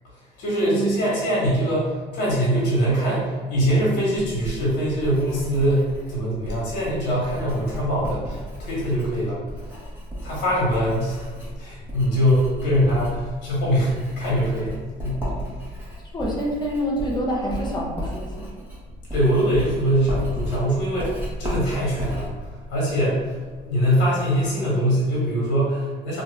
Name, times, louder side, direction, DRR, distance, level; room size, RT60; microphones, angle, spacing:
voice 1, 0.4-9.4 10.2-11.3 11.6-15.3 19.1-22.3 22.7-23.3 23.6-26.2, equal, 85° left, -6 dB, 1.2 m, -23 dB
Writing, 4.2-23.7, equal, 10° right, 1.1 m, -34 dB
voice 2, 16.1-18.5, equal, 25° left, -3 dB, 0.6 m, -27 dB
2.7 x 2.4 x 3.2 m, 1.4 s
cardioid pair, 110°, 17 cm